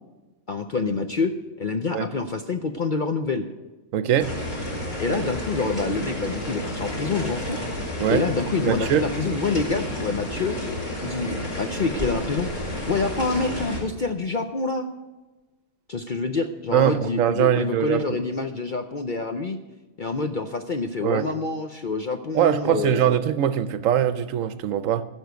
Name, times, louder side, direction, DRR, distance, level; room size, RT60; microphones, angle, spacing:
voice 1, 0.5-1.3 1.6-3.5 5.0-7.6 8.1-10.6 11.0-12.5 12.9-14.9 15.9-19.6 20.0-23.0, left 4 dB, 50° left, 7 dB, 0.6 m, -27 dB
voice 2, 3.9-4.3 8.0-8.3 8.6-9.1 16.7-18.2 21.0-21.3 22.3-25.0, right 10 dB, 70° right, 14 dB, 1.0 m, -22 dB
sound 1, 4.2-13.8, left 1 dB, 30° left, 3.1 m, -31 dB
15.0 x 6.4 x 8.0 m, 1.2 s
omnidirectional pair, 1.5 m